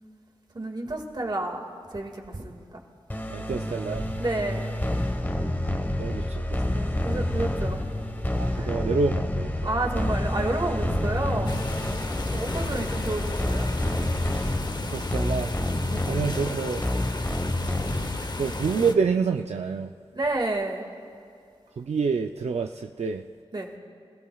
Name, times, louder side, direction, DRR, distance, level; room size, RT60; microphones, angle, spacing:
voice 1, 0.5-2.8 4.2-4.7 6.7-7.8 8.6-8.7 9.6-11.6 12.3-13.7 15.9-16.1 17.6-17.7 20.1-20.9 23.5-23.7, right 2 dB, 40° right, 2 dB, 2.0 m, -30 dB
sound 1, 3.1-18.5, left 1 dB, 15° left, 1.2 m, -28 dB
voice 2, 3.3-4.1 6.0-6.8 8.4-9.7 11.9-12.1 12.7-12.9 14.3-15.5 15.8-16.8 17.8-18.1 18.4-19.9 21.8-23.3, right 5 dB, 80° right, 4 dB, 0.5 m, -28 dB
sound 2, 11.4-18.9, left 2 dB, 40° left, 0.8 m, -33 dB
27.0 x 17.0 x 2.3 m, 2.5 s
wide cardioid pair, 75°, 11 cm